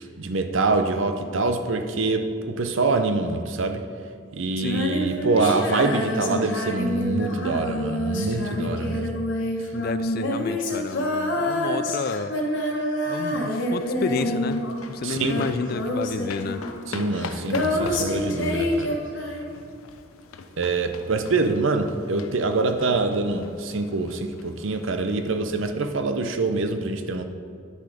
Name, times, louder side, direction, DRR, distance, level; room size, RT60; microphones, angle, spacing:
voice 1, 0.0-3.8 4.4-9.1 15.0-15.5 16.9-19.0 20.6-27.3, right 3 dB, 65° right, 7 dB, 0.6 m, -25 dB
Female singing, 4.6-14.9 15.2-19.6, left 1 dB, 60° left, 1.3 m, -27 dB
voice 2, 4.6-4.9 9.7-12.4 13.1-14.6 14.9-16.7, left 5 dB, 45° left, 13 dB, 0.3 m, -30 dB
sound 1, 13.6-25.3, left 4 dB, 85° left, 0.6 m, -42 dB
10.0 x 6.7 x 5.0 m, 2.3 s
head